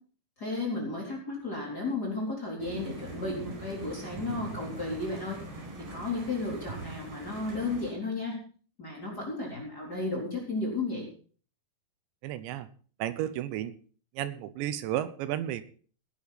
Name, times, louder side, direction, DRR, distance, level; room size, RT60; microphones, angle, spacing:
voice 1, 0.4-5.4 5.9-8.4 8.8-11.1, left 2 dB, 20° left, -2 dB, 3.9 m, -33 dB
sound 1, 2.6-7.9, right 2 dB, 65° right, 6.5 m, -42 dB
voice 2, 12.2-12.7 13.0-13.7 14.2-15.6, right 12 dB, 80° right, 13 dB, 3.1 m, -32 dB
18.0 x 10.5 x 4.2 m, 0.41 s
omnidirectional pair, 5.1 m